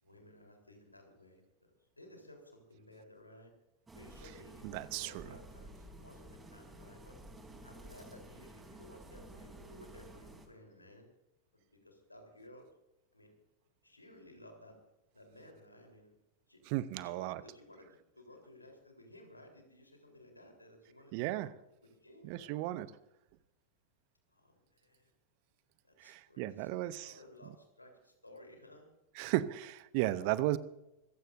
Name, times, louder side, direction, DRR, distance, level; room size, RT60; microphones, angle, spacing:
voice 1, 0.0-3.5 3.9-7.2 7.6-11.1 11.5-12.7 13.1-13.4 13.8-14.8 15.1-16.1 16.5-21.5 21.8-22.7 24.3-25.1 25.8-28.9 30.2-30.3, left 1 dB, 85° left, 2 dB, 3.7 m, -57 dB
sound 1, 3.9-10.5, right 1 dB, 15° right, 3.5 m, -52 dB
voice 2, 4.6-5.2 16.7-17.4 21.1-21.5 22.2-22.9 26.0-27.1 29.2-30.6, right 16 dB, 45° right, 17 dB, 0.8 m, -35 dB
25.0 x 16.0 x 2.6 m, 0.90 s
figure-of-eight pair, 90°, 0 cm